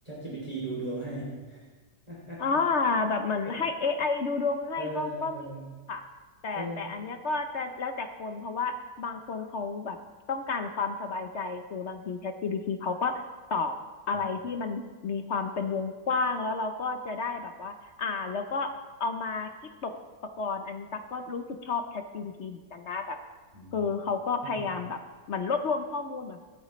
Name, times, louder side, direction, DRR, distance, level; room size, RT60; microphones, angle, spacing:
voice 1, 0.0-1.6 2.1-2.4 3.4-3.6 4.8-5.7 6.5-6.9 14.1-14.3 23.5-23.9 24.5-24.7, right 1 dB, 20° right, -5 dB, 2.7 m, -37 dB
voice 2, 2.4-5.4 5.9-6.0 6.4-10.0 10.3-13.2 13.5-13.7 14.1-18.7 19.0-19.5 19.8-19.9 20.4-23.2 23.7-25.0 25.3-26.4, left 4 dB, 55° left, 6 dB, 0.8 m, -31 dB
25.0 x 9.1 x 3.2 m, 1.3 s
omnidirectional pair, 1.8 m